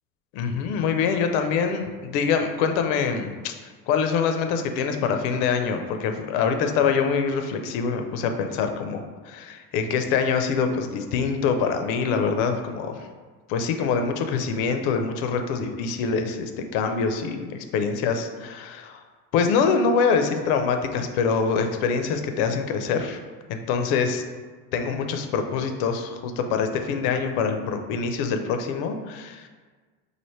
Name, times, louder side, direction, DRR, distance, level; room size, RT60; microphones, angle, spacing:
voice 1, 0.3-13.1 13.5-19.0 19.3-23.2 23.5-24.2 24.7-29.5, left 5 dB, 80° left, 6 dB, 0.5 m, -25 dB
3.2 x 2.5 x 4.3 m, 1.4 s
cardioid pair, 170°, 34 cm